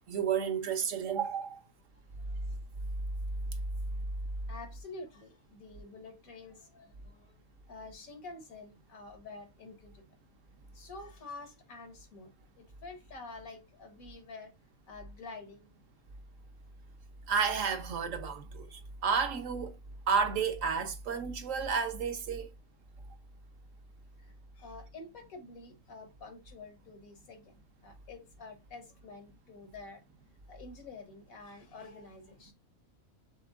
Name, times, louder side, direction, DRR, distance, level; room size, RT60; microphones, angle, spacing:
voice 1, 0.1-1.6 17.3-19.8 20.1-22.5, right 6 dB, 70° right, 1.2 m, -31 dB
voice 2, 4.5-7.4 7.7-10.2 10.7-12.3 12.6-14.5 14.9-15.7 24.2-27.5 27.8-30.0 30.5-32.5, left 3 dB, 80° left, 1.7 m, -48 dB
5.9 x 3.4 x 2.5 m
omnidirectional pair, 1.5 m